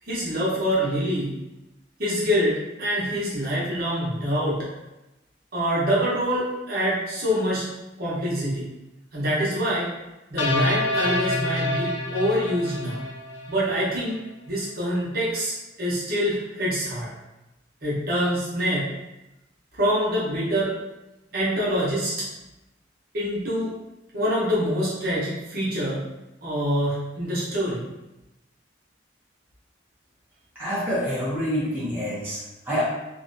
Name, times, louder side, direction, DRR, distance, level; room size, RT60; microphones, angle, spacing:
voice 1, 0.1-1.3 2.0-4.7 5.5-7.7 8.0-8.7 9.1-9.9 10.3-13.0 13.5-14.2 14.5-15.5 15.8-17.1 17.8-18.9 19.8-20.7 21.3-22.3 23.1-23.7 24.1-26.0 26.4-27.8, equal, 50° right, -8 dB, 0.8 m, -25 dB
sound 1, 10.4-13.7, left 1 dB, 85° left, 0.4 m, -27 dB
voice 2, 30.6-32.8, equal, 10° right, -10 dB, 0.6 m, -27 dB
2.6 x 2.1 x 2.5 m, 0.98 s
head